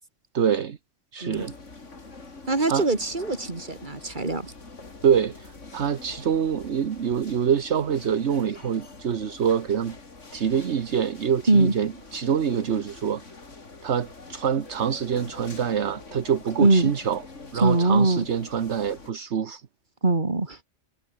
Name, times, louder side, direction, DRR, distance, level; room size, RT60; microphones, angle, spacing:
voice 1, 0.3-0.8 1.1-1.5 2.7-2.9 5.0-10.0 10.3-13.2 13.8-17.2 17.5-19.6, right 8 dB, 65° right, 1.4 m, -25 dB
sound 1, 1.3-19.1, left 3 dB, 75° left, 3.5 m, -45 dB
voice 2, 2.5-4.5 11.5-11.7 16.6-16.9 17.6-18.2 20.0-20.6, right 2 dB, 40° right, 3.0 m, -22 dB
omnidirectional pair, 1.3 m